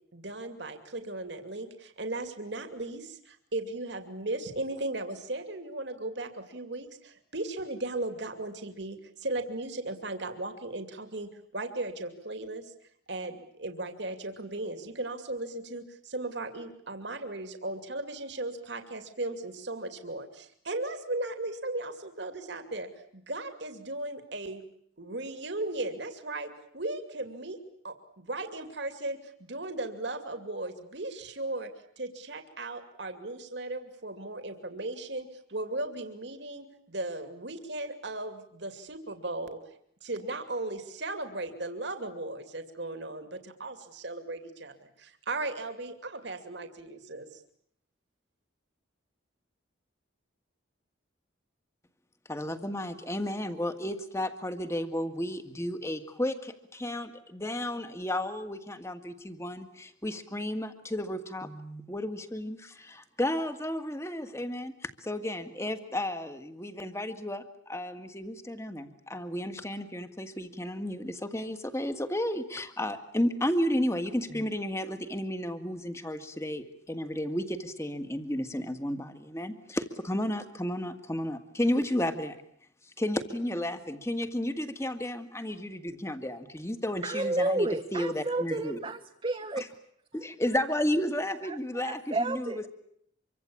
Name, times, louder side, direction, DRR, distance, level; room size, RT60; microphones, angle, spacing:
voice 1, 0.1-12.7 13.1-24.6 25.0-27.6 27.8-31.7 32.0-39.6 40.0-47.3, right 2 dB, 60° right, 8 dB, 2.6 m, -37 dB
voice 2, 52.3-82.4 83.0-88.8 90.1-92.7, left 1 dB, 15° left, 10 dB, 2.0 m, -33 dB
voice 3, 87.0-89.7 90.1-90.2 91.5-92.7, right 2 dB, 25° right, 7 dB, 1.1 m, -31 dB
26.0 x 24.5 x 8.7 m, 0.69 s
head